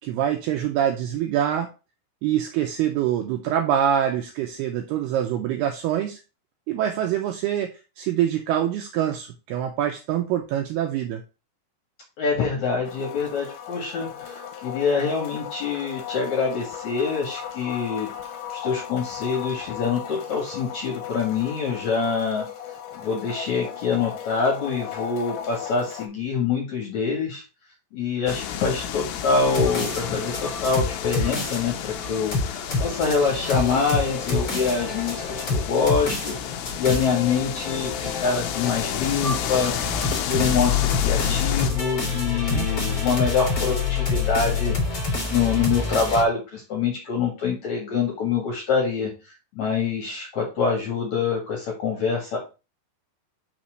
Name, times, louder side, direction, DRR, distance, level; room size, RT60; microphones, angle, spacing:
voice 1, 0.0-1.7 2.2-6.2 6.7-11.2 42.5-42.7, right 10 dB, 80° right, 4 dB, 2.3 m, -25 dB
voice 2, 12.2-18.1 18.5-22.5 22.9-27.4 27.9-36.4 36.7-39.7 40.3-44.7 45.3-49.1 49.5-52.4, left 5 dB, 55° left, 0 dB, 2.3 m, -25 dB
sound 1, 12.8-26.1, left 9 dB, 75° left, 2.5 m, -36 dB
sound 2, 28.3-41.7, left 9 dB, 90° left, 2.1 m, -31 dB
sound 3, 29.4-46.2, left 4 dB, 35° left, 1.4 m, -27 dB
6.1 x 4.3 x 6.2 m, 0.31 s
omnidirectional pair, 5.4 m